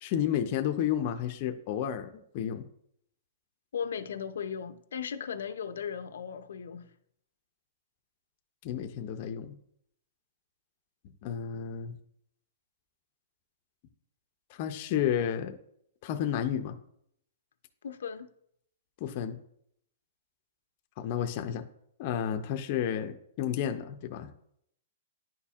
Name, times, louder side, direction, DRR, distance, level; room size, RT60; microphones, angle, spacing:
voice 1, 0.0-2.7 8.6-9.6 11.2-12.0 14.5-15.6 16.0-16.8 19.0-19.4 21.0-21.7 22.0-24.3, left 9 dB, 30° left, 0.4 m, -31 dB
voice 2, 3.7-6.9 17.8-18.3, left 7 dB, 90° left, 0.5 m, -37 dB
10.5 x 4.2 x 2.4 m
hypercardioid pair, 175°, 0 cm